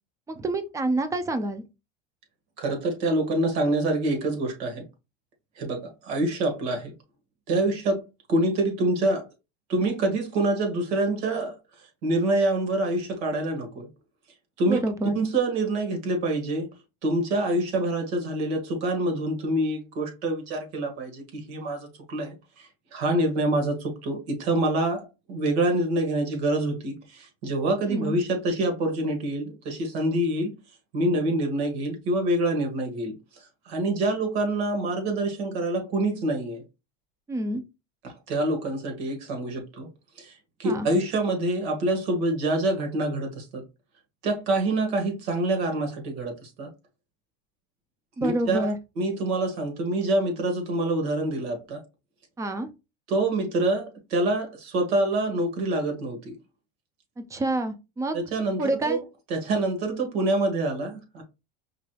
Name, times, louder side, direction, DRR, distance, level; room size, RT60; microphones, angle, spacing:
voice 1, 0.3-1.6 14.7-15.2 27.9-28.2 37.3-37.6 40.6-40.9 48.2-48.8 52.4-52.7 57.3-58.2 58.6-59.0, right 2 dB, 10° right, 0.4 m, -27 dB
voice 2, 2.6-4.8 5.6-6.9 7.5-8.0 8.3-9.3 9.7-11.6 12.0-13.9 14.6-14.8 15.1-16.7 17.0-30.5 30.9-33.1 33.6-36.6 38.0-39.9 40.2-43.6 44.2-46.7 48.2-51.8 53.1-56.4 58.1-59.0 59.3-61.2, right 2 dB, 75° right, 1.8 m, -26 dB
4.9 x 3.1 x 2.3 m
supercardioid pair, 135°, 32 cm